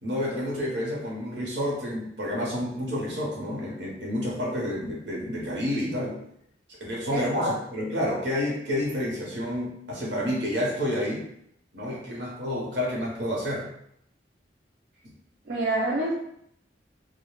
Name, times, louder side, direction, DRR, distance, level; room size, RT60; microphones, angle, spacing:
voice 1, 0.0-6.2 6.8-11.3 11.7-13.7, left 1 dB, 80° right, -4 dB, 0.8 m, -29 dB
voice 2, 7.1-7.5 15.5-16.1, right 1 dB, 60° right, -6 dB, 0.5 m, -27 dB
2.2 x 2.1 x 3.0 m, 0.73 s
head